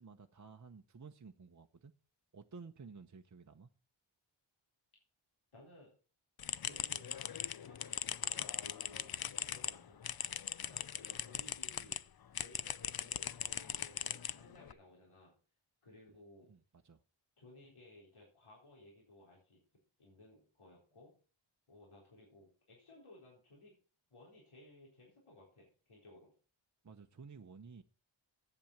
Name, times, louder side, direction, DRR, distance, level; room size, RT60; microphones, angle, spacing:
voice 1, 0.0-1.9 2.3-3.7 16.5-17.0 26.8-27.8, right 5 dB, 35° right, 0.9 m, -54 dB
voice 2, 5.5-5.9 6.6-7.1 7.6-9.2 9.5-10.4 10.7-12.0 12.4-15.3 15.8-16.5 17.4-19.6 20.0-21.1 21.7-23.8 24.1-26.3, left 2 dB, 80° left, 4.2 m, -59 dB
sound 1, 6.4-12.0 12.3-14.7, left 9 dB, 50° left, 0.6 m, -40 dB
8.8 x 7.6 x 7.2 m
cardioid pair, 50°, 49 cm